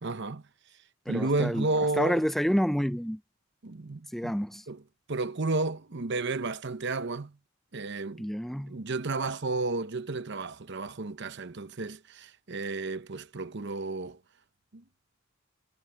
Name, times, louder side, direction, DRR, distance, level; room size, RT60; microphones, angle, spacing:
voice 1, 0.0-0.4 1.1-2.2 3.6-4.3 4.7-4.8 5.1-7.4 7.7-8.3 8.7-14.2 14.7-14.8, right 3 dB, 60° right, 0.9 m, -32 dB
voice 2, 1.1-1.7 2.0-3.2 4.1-4.6 8.2-8.8, equal, ahead, 0.6 m, -28 dB
head